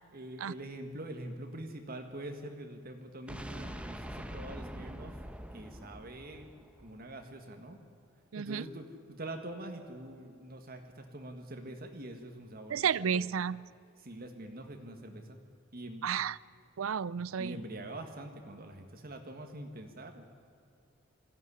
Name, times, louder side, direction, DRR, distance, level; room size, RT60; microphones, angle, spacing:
voice 1, 0.1-5.2 5.5-6.5 6.8-7.8 8.4-13.2 14.0-15.4 15.7-16.1 17.4-20.3, right 1 dB, 50° right, 4 dB, 1.7 m, -44 dB
sound 1, 3.3-7.2, equal, 5° right, 1.0 m, -44 dB
voice 2, 8.3-8.6 12.7-13.6 16.0-16.4 16.8-17.6, right 7 dB, 85° right, 21 dB, 0.5 m, -32 dB
21.0 x 15.0 x 9.9 m, 2.5 s
head